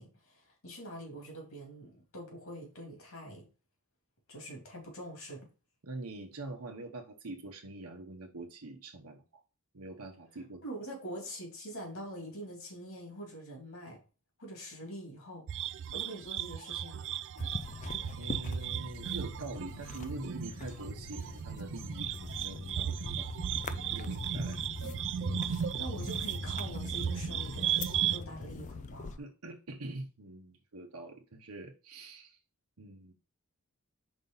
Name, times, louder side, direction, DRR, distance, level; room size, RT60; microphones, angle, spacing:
voice 1, 0.0-3.4 4.3-5.5 10.6-14.0 14.4-15.4 15.9-17.0 25.8-29.2, equal, 70° left, 2.7 m, -44 dB
voice 2, 5.8-9.4 9.7-10.6 18.2-23.3 23.7-24.7 29.2-32.4 32.8-33.1, right 2 dB, 80° right, 0.9 m, -45 dB
sound 1, 15.5-28.2, right 9 dB, 55° right, 0.3 m, -36 dB
sound 2, 17.4-29.2, left 4 dB, 35° left, 0.4 m, -42 dB
5.3 x 3.9 x 5.4 m
head